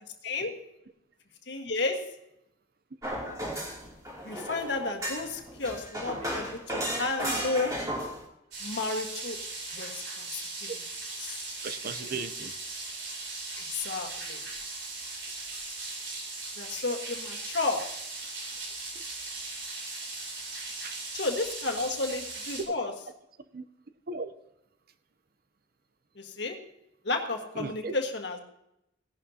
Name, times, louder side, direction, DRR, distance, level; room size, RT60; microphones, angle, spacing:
voice 1, 1.5-2.0 4.2-7.7 8.6-9.4 9.7-10.7 11.2-11.5 13.6-14.4 16.5-17.8 21.1-22.9 26.1-26.5 27.0-28.4, left 3 dB, 65° left, 3 dB, 1.6 m, -32 dB
sound 1, 3.0-8.2, equal, 15° right, 2.8 m, -34 dB
sound 2, 8.5-22.6, right 3 dB, 70° right, 4.0 m, -38 dB
voice 2, 11.6-12.5 20.8-21.0 23.5-23.7 24.1-24.3 27.6-27.9, right 4 dB, 50° right, 11 dB, 0.7 m, -36 dB
17.0 x 11.5 x 2.8 m, 0.81 s
head